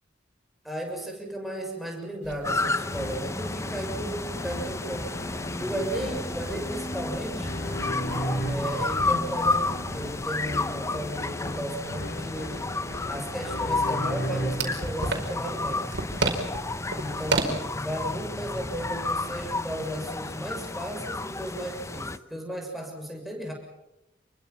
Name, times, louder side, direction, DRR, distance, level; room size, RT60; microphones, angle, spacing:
voice 1, 0.6-5.1 5.5-7.5 8.5-12.7 13.1-16.0 16.9-23.5, right 1 dB, ahead, 0 dB, 6.6 m, -35 dB
sound 1, 2.2-2.4 2.7-2.8 3.1-3.2 3.8-6.8 7.1-17.5, right 3 dB, 70° right, 5.0 m, -35 dB
sound 2, 2.4-22.2, left 2 dB, 15° left, 0.7 m, -31 dB
sound 3, 2.8-14.9, equal, 65° left, 3.7 m, -36 dB
29.0 x 22.5 x 6.0 m, 0.93 s
head